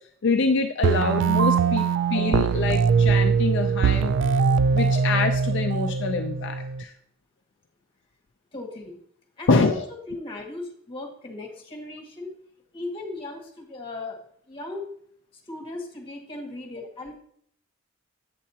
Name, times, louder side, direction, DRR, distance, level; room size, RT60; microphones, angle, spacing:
voice 1, 0.2-1.8 2.1-4.1 4.7-6.9 9.5-9.9, left 3 dB, 60° left, 5 dB, 0.5 m, -25 dB
sound 1, 0.8-6.8, right 5 dB, 60° right, 0.3 m, -22 dB
voice 2, 8.5-9.0 9.4-9.8 10.1-12.3 12.7-14.2 14.5-14.9 15.5-17.1, left 2 dB, 25° left, 1 dB, 1.7 m, -37 dB
8.4 x 7.4 x 2.8 m, 0.63 s
head